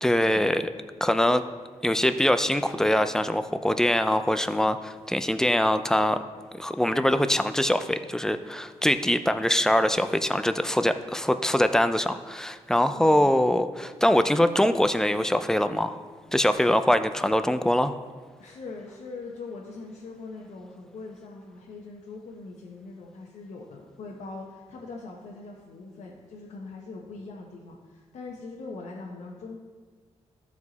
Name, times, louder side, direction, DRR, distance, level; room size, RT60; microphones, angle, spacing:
voice 1, 0.0-0.6 1.0-1.4 1.8-6.2 6.5-16.0 16.3-18.0, left 1 dB, 5° left, 10 dB, 0.4 m, -23 dB
voice 2, 12.9-13.3 18.4-29.6, left 3 dB, 85° left, -2 dB, 1.0 m, -41 dB
13.5 x 4.8 x 4.1 m, 1.5 s
cardioid pair, 105°, 12 cm